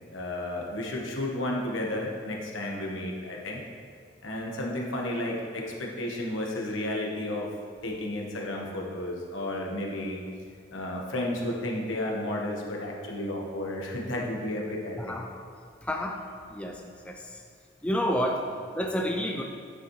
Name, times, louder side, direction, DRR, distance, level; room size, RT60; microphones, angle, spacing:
voice 1, 0.1-3.6 4.2-7.5 7.8-10.2 10.7-15.2, left 1 dB, 80° left, -1 dB, 1.3 m, -32 dB
voice 2, 15.0-15.3 15.8-17.4 17.8-19.4, equal, 5° left, 2 dB, 0.4 m, -30 dB
9.2 x 7.2 x 3.2 m, 2.2 s
head